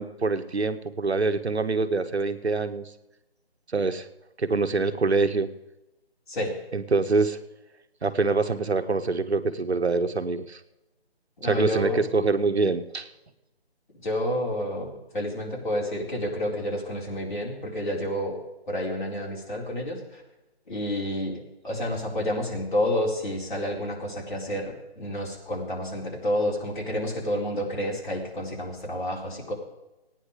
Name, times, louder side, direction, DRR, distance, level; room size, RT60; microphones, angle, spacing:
voice 1, 0.0-2.9 3.7-4.1 4.4-5.5 6.7-7.4 8.0-10.6 11.4-13.1, right 3 dB, 85° right, 9 dB, 1.4 m, -25 dB
voice 2, 11.4-12.0 14.0-14.9 15.1-18.4 18.7-20.2 20.7-29.5, left 1 dB, 50° left, -3 dB, 4.2 m, -29 dB
17.0 x 9.8 x 5.0 m, 0.98 s
figure-of-eight pair, 165°, 32 cm